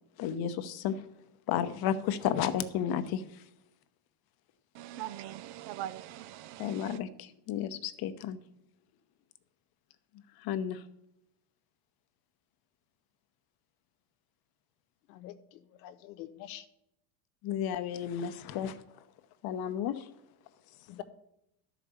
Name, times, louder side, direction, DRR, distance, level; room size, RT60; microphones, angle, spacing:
voice 1, 0.2-1.0 1.5-3.4 6.6-8.4 10.4-10.8 17.4-18.8 19.4-20.1, left 9 dB, 50° left, 0.9 m, -32 dB
voice 2, 4.7-7.0, right 13 dB, 55° right, 0.6 m, -42 dB
voice 3, 15.1-16.7 20.9-21.0, left 13 dB, 85° left, 1.1 m, -46 dB
11.5 x 5.1 x 6.9 m
supercardioid pair, 130°, 49 cm